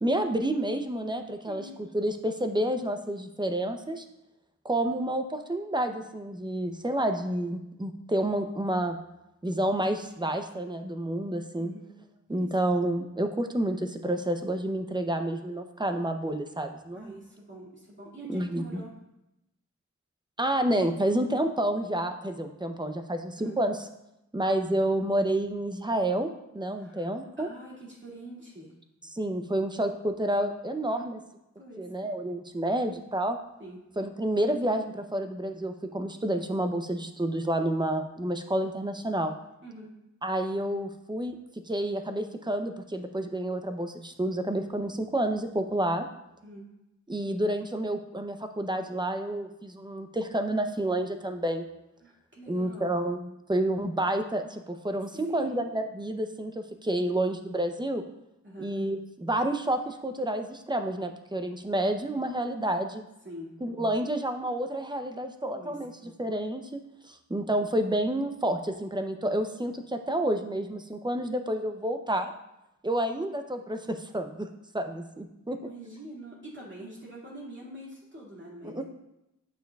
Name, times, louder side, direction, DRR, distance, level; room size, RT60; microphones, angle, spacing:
voice 1, 0.0-1.7 1.9-4.0 4.6-9.0 9.4-11.7 12.3-17.2 18.3-18.8 20.4-23.8 24.3-26.3 26.5-27.5 29.1-31.2 31.8-33.4 34.0-39.3 40.2-41.4 41.7-46.1 47.1-51.7 52.5-58.0 58.6-63.0 63.6-65.9 66.2-66.8 67.1-72.3 72.8-74.5 74.7-75.6 78.6-78.8, right 1 dB, 15° right, 6 dB, 0.6 m, -29 dB
voice 2, 1.4-1.8 11.6-11.9 12.3-12.6 16.9-19.0 23.4-23.6 26.8-27.1 27.4-28.7 30.9-31.1 31.6-31.9 33.6-33.8 39.6-39.9 46.4-46.7 52.0-53.0 55.1-55.5 58.4-58.7 63.2-63.5 65.5-65.8 75.6-78.8, right 1 dB, 40° right, -6 dB, 2.2 m, -44 dB
9.0 x 6.8 x 2.3 m, 0.89 s
wide cardioid pair, 90°, 30 cm